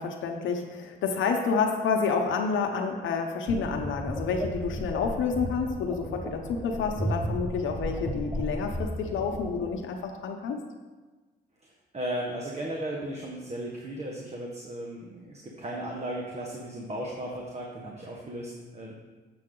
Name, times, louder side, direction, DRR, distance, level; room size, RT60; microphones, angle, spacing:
voice 1, 0.0-10.6, left 5 dB, 75° left, 3 dB, 0.9 m, -29 dB
sound 1, 3.5-9.7, equal, 5° right, 0.8 m, -34 dB
voice 2, 11.6-19.0, right 1 dB, 35° right, -1 dB, 1.2 m, -36 dB
7.5 x 6.8 x 3.8 m, 1.3 s
cardioid pair, 90°, 20 cm